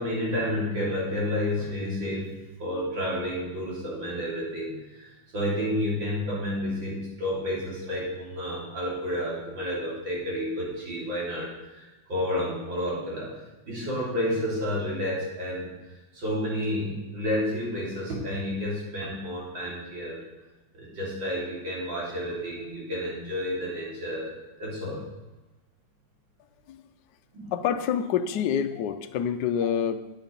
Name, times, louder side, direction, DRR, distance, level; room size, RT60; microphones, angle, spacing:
voice 1, 0.0-2.3 2.6-20.2 20.7-25.0 27.3-27.5, left 1 dB, 70° right, -5 dB, 4.0 m, -30 dB
voice 2, 27.5-30.0, left 8 dB, 70° left, 8 dB, 1.2 m, -27 dB
9.6 x 8.9 x 5.3 m, 1.1 s
omnidirectional pair, 2.2 m